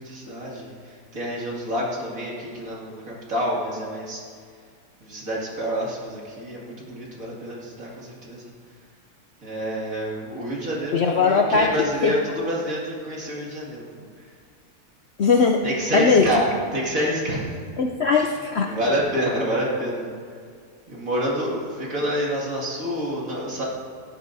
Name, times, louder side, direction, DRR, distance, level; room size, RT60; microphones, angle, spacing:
voice 1, 0.0-4.2 5.0-8.5 9.4-14.0 15.6-16.5 16.7-17.6 18.1-18.3 18.7-20.1 20.9-23.6, equal, 60° right, -5 dB, 2.7 m, -28 dB
voice 2, 10.9-11.7 12.0-12.1 15.2-15.6 15.9-16.3 17.8-18.7, left 5 dB, 60° left, 2 dB, 0.7 m, -19 dB
16.5 x 11.5 x 2.7 m, 2.1 s
omnidirectional pair, 1.6 m